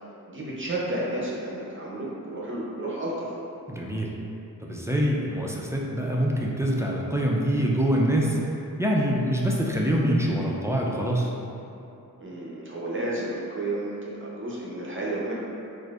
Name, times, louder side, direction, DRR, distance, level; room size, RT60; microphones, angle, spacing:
voice 1, 0.3-3.3 12.2-15.3, right 1 dB, 35° right, -6 dB, 0.7 m, -31 dB
voice 2, 3.7-4.1 4.6-8.4 8.8-11.3, equal, 10° right, -3 dB, 0.3 m, -25 dB
4.0 x 2.6 x 2.4 m, 2.8 s
wide cardioid pair, 75°, 37 cm